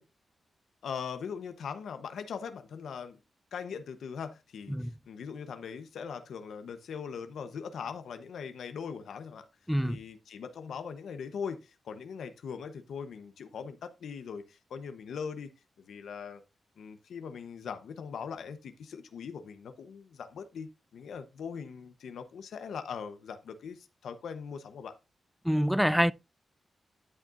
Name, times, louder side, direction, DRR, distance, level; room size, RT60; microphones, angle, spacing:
voice 1, 0.8-3.2 3.5-9.5 9.8-15.5 15.8-16.4 16.8-25.0, left 6 dB, 85° left, 0.9 m, -40 dB
voice 2, 9.7-10.0 25.4-26.1, equal, ahead, 0.4 m, -26 dB
12.5 x 6.5 x 2.5 m
cardioid pair, 80°, 0 cm